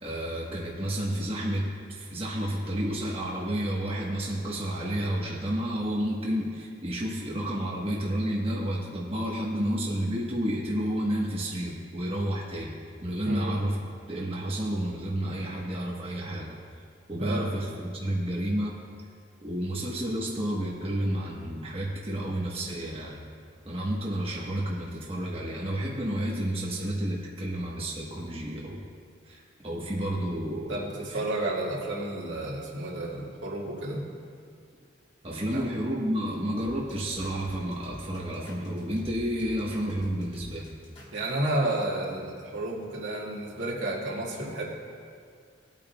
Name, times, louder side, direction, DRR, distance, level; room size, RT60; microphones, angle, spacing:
voice 1, 0.0-13.8 14.1-16.5 17.1-18.8 19.4-23.2 23.6-28.8 29.3-30.8 31.1-31.2 35.2-40.7, right 1 dB, 30° right, -4 dB, 1.2 m, -31 dB
voice 2, 17.2-17.5 30.7-34.0 35.5-35.6 41.1-44.6, right 1 dB, 80° right, -4 dB, 2.0 m, -31 dB
sound 1, 36.6-41.5, right 1 dB, 35° left, 2.8 m, -46 dB
19.5 x 8.8 x 2.3 m, 2.2 s
head